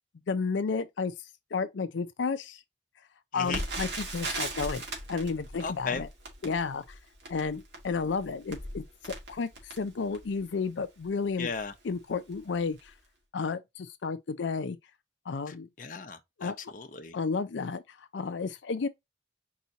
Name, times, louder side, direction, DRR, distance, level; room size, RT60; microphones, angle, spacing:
voice 1, 0.3-1.1 1.5-2.6 3.3-6.1 6.4-6.8 7.3-9.5 9.8-11.5 11.8-12.9 13.3-14.8 15.3-15.7 16.4-16.6 17.1-17.8 18.1-18.9, left 4 dB, 85° left, 0.5 m, -32 dB
voice 2, 3.3-3.6 5.6-6.0 11.4-11.7 15.5-17.2, left 5 dB, 45° left, 0.7 m, -36 dB
Crackle, 3.5-10.4 11.0-11.1 11.4-11.7 12.3-12.5 12.8-12.9, right 2 dB, 70° right, 2.0 m, -38 dB
4.7 x 2.8 x 3.9 m
head